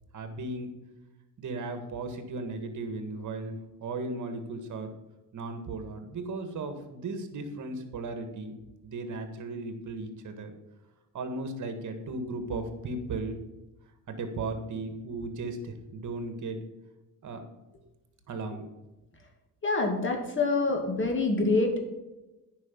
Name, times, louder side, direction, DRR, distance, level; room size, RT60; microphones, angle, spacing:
voice 1, 0.1-0.7 1.4-4.9 5.3-8.6 8.8-10.5 11.1-13.4 14.1-16.6 17.2-17.4 18.3-18.7, right 3 dB, 50° right, 7 dB, 1.8 m, -36 dB
voice 2, 19.6-21.8, left 3 dB, 30° left, 3 dB, 2.4 m, -26 dB
9.7 x 5.5 x 7.0 m, 1.0 s
cardioid pair, 90°, 37 cm